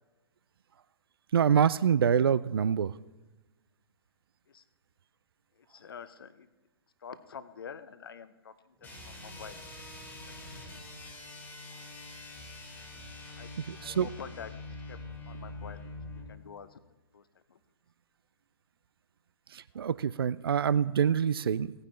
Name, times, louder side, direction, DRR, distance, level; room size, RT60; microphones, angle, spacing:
voice 1, 1.3-2.9 13.7-14.1 19.5-21.7, right 8 dB, 65° right, 18 dB, 0.4 m, -26 dB
voice 2, 5.6-6.5 7.0-9.7 10.3-10.4 13.4-13.5 13.8-14.6 14.9-16.8 17.1-17.2 17.5-17.6, left 7 dB, 60° left, 13 dB, 0.8 m, -47 dB
sound 1, 8.8-16.3, left 2 dB, 10° left, 1.9 m, -45 dB
17.0 x 9.6 x 3.2 m, 1.2 s
figure-of-eight pair, 115°, 13 cm